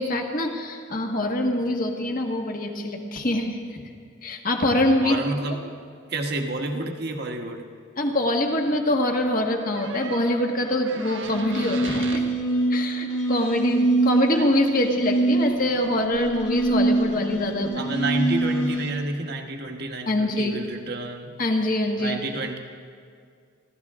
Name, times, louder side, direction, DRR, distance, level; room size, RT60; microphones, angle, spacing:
voice 1, 0.0-3.9 4.2-5.2 5.5-5.6 8.0-12.2 12.7-17.8 20.1-20.6 21.4-22.2, left 1 dB, 45° left, 3 dB, 1.6 m, -24 dB
voice 2, 5.0-5.6 6.1-7.7 17.7-21.3 22.0-22.6, right 2 dB, 55° right, 3 dB, 1.4 m, -29 dB
sound 1, 9.7-12.3 14.3-14.5, right 4 dB, 70° right, 1.4 m, -38 dB
sound 2, 11.3-18.9, right 2 dB, 70° left, 2.0 m, -24 dB
29.5 x 13.0 x 3.7 m, 2.2 s
head